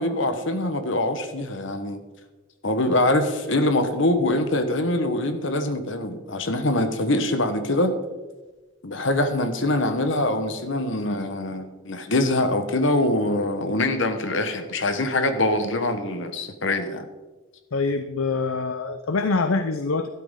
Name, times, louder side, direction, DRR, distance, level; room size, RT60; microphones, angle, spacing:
voice 1, 0.0-2.0 2.6-7.9 8.8-17.1, left 1 dB, 60° left, 9 dB, 1.2 m, -24 dB
voice 2, 17.7-20.1, left 3 dB, 85° left, 10 dB, 0.7 m, -24 dB
12.5 x 12.5 x 3.8 m, 1.2 s
head